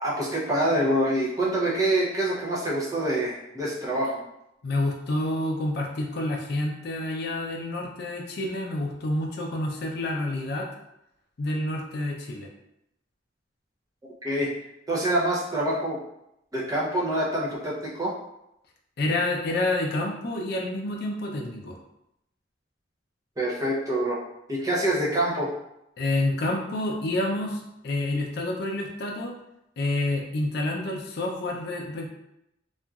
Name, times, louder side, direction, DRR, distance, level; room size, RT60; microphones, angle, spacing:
voice 1, 0.0-4.2 14.2-14.5 14.9-16.0 16.5-18.1 23.4-24.2 24.5-25.5, right 1 dB, 20° right, -5 dB, 0.6 m, -26 dB
voice 2, 4.6-10.7 11.4-12.5 19.0-21.8 26.0-29.4 29.8-32.1, left 2 dB, 60° left, 0 dB, 0.5 m, -28 dB
2.8 x 2.4 x 2.3 m, 0.83 s
head